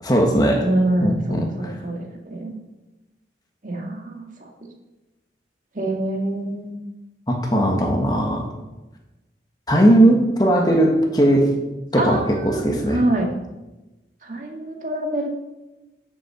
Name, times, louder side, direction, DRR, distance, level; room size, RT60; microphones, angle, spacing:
voice 1, 0.0-0.7 1.0-1.7 7.3-8.5 9.7-11.5 11.9-13.0, right 1 dB, 20° left, 2 dB, 1.4 m, -18 dB
voice 2, 0.6-2.6 3.6-4.5 5.7-6.7 12.0-13.3 14.2-15.3, right 1 dB, 45° right, 1 dB, 2.0 m, -25 dB
9.9 x 7.3 x 6.8 m, 1.0 s
head